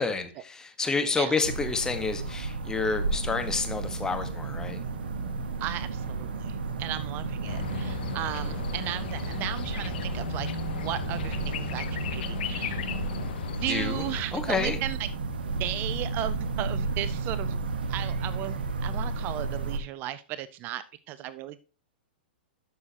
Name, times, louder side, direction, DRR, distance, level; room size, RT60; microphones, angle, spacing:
voice 1, 0.0-4.8 13.5-14.8, left 4 dB, 10° left, 7 dB, 1.3 m, -29 dB
sound 1, 1.4-19.8, right 3 dB, 80° right, 1.3 m, -33 dB
sound 2, 3.0-13.3, right 4 dB, 55° right, 2.6 m, -44 dB
voice 2, 5.6-12.8 13.6-15.1 15.6-17.6 17.9-21.7, right 13 dB, 35° right, 16 dB, 0.4 m, -35 dB
sound 3, 7.5-14.2, left 8 dB, 70° left, 0.8 m, -36 dB
12.0 x 6.3 x 2.9 m, 0.35 s
hypercardioid pair, 120°, 5 cm